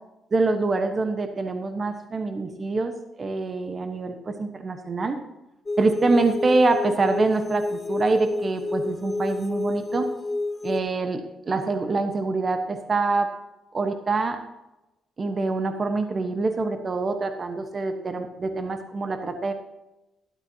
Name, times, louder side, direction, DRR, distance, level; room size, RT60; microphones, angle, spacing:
voice 1, 0.3-2.9 3.2-5.2 5.8-10.1 10.6-13.3 13.7-14.4 15.2-19.5, right 3 dB, 35° right, 7 dB, 1.1 m, -25 dB
sound 1, 5.7-10.8, left 2 dB, 25° left, 0.8 m, -29 dB
12.5 x 12.0 x 2.8 m, 0.96 s
cardioid pair, 90°, 0 cm